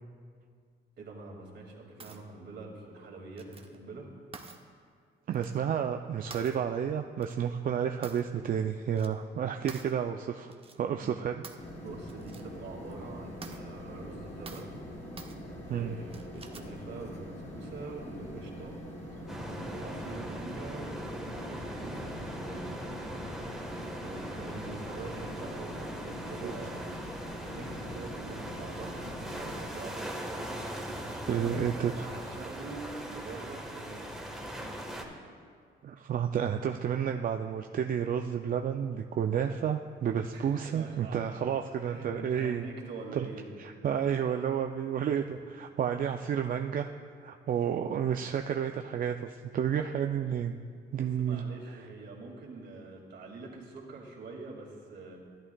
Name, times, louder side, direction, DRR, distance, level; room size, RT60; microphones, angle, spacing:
voice 1, 1.0-4.1 11.0-11.1 11.8-14.7 15.6-18.8 19.1-22.9 23.9-27.0 27.5-30.5 31.0-34.1 40.3-41.5 41.7-43.5 50.9-55.2, right 3 dB, 60° right, -1 dB, 2.2 m, -45 dB
sound 1, 2.0-2.2 3.4-3.8 4.3-4.6 5.3-5.6 6.3-6.6 7.2-7.3 8.0-8.5 8.7-9.1 9.7-9.9 10.5-10.8 11.4-11.7 12.1-12.4 12.9-13.0 13.4-13.6 14.5-14.8 15.2-15.4 16.1-16.8, right 4 dB, 30° right, 0.8 m, -47 dB
voice 2, 5.3-10.5 10.8-11.4 15.7-15.9 26.4-26.5 31.0-31.9 35.8-42.7 43.2-43.3 43.6-46.9 47.2-50.6 50.9-51.5, right 8 dB, 45° right, 5 dB, 0.4 m, -31 dB
sound 2, 11.6-29.7, left 1 dB, 35° left, 2.2 m, -44 dB
sound 3, 19.3-35.0, right 1 dB, ahead, 1.3 m, -40 dB
13.0 x 11.0 x 2.3 m, 2.1 s
cardioid pair, 90°, 20 cm